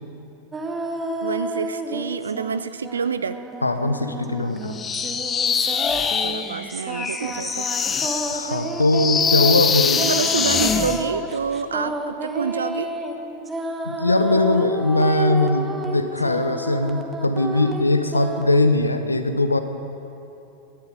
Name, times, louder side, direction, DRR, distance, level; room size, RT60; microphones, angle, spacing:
Dry Vocal Chops Female, 0.5-2.6 2.8-18.6, right 2 dB, 15° right, 1.1 m, -31 dB
voice 1, 1.2-3.4 6.1-7.7 9.9-12.9, right 5 dB, 70° right, 13 dB, 0.4 m, -27 dB
voice 2, 3.6-4.8 8.3-10.0 13.8-19.6, left 2 dB, 80° left, 9 dB, 0.7 m, -20 dB
sound 1, 4.7-11.1, left 7 dB, 20° left, 0.6 m, -23 dB
18.5 x 11.0 x 5.0 m, 2.9 s
figure-of-eight pair, 90°, 0 cm